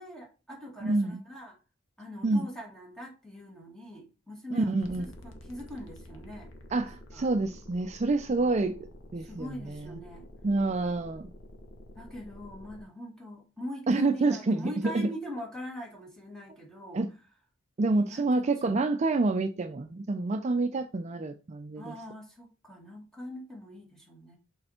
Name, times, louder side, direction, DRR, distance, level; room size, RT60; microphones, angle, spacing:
voice 1, 0.0-1.6 2.0-6.5 7.1-7.3 9.2-10.3 12.0-17.0 17.9-18.8 21.8-24.4, equal, 5° left, 2.1 m, -42 dB
voice 2, 0.8-1.2 2.2-2.5 4.5-5.1 6.7-10.0 10.4-11.3 13.9-15.1 16.9-17.1 17.8-22.0, right 2 dB, 35° right, 0.4 m, -28 dB
sound 1, 4.8-12.8, left 1 dB, 75° left, 1.3 m, -49 dB
6.6 x 4.3 x 4.3 m
head